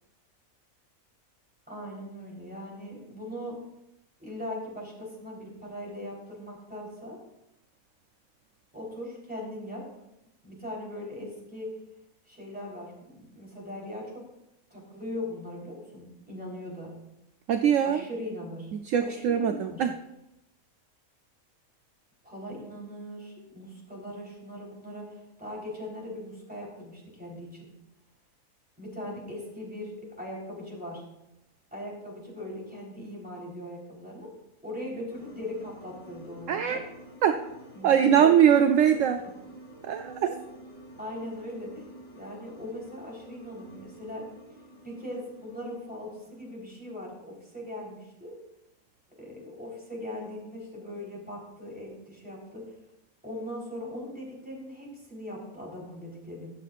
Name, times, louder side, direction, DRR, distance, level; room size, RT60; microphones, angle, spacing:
voice 1, 1.7-3.5 4.2-7.2 8.7-9.9 10.4-11.7 12.3-14.2 14.7-16.9 17.8-18.7 19.0-19.9 22.2-27.7 28.8-29.9 30.2-31.0 31.7-34.3 34.6-36.8 37.7-38.4 40.9-41.8 42.1-44.2 44.8-48.3 49.2-52.6 53.2-56.5, left 1 dB, 5° right, -4 dB, 3.8 m, -40 dB
voice 2, 17.5-18.0 18.9-19.9 36.5-36.8 37.2-37.4 37.8-39.2 39.8-40.4, right 9 dB, 70° right, 6 dB, 0.9 m, -22 dB
sound 1, 35.1-46.6, right 1 dB, 30° left, 3.2 m, -49 dB
22.0 x 7.5 x 2.5 m, 0.86 s
omnidirectional pair, 1.5 m